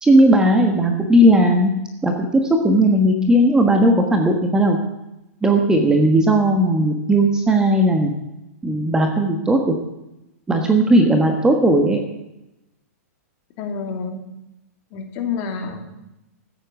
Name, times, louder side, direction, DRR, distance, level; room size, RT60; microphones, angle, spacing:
voice 1, 0.0-1.7 2.0-4.8 5.4-8.1 8.6-9.7 10.5-12.0, right 1 dB, 10° right, 4 dB, 1.3 m, -16 dB
voice 2, 13.6-14.3 14.9-15.8, left 5 dB, 35° left, 4 dB, 2.7 m, -28 dB
14.5 x 8.7 x 8.2 m, 0.92 s
hypercardioid pair, 150°, 9 cm